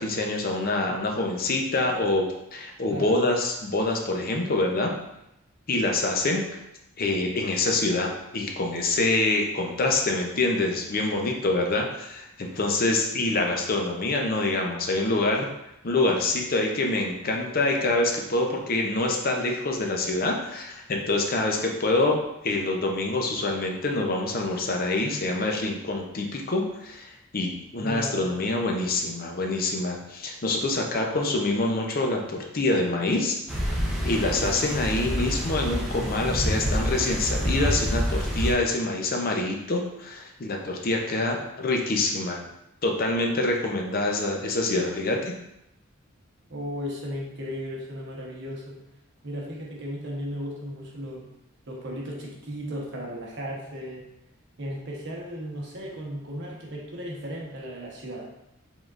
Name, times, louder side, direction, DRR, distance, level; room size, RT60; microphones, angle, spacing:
voice 1, 0.0-4.9 5.7-6.4 7.0-15.5 15.8-33.4 33.7-33.8 34.0-42.4 42.8-45.2, left 2 dB, 45° left, 1 dB, 0.6 m, -26 dB
voice 2, 27.8-28.3 46.5-48.8 49.2-51.3 51.7-54.1 54.6-58.3, equal, 60° right, -2 dB, 1.0 m, -35 dB
sound 1, 33.5-38.5, equal, ahead, 0.7 m, -27 dB
5.0 x 3.8 x 2.4 m, 0.85 s
head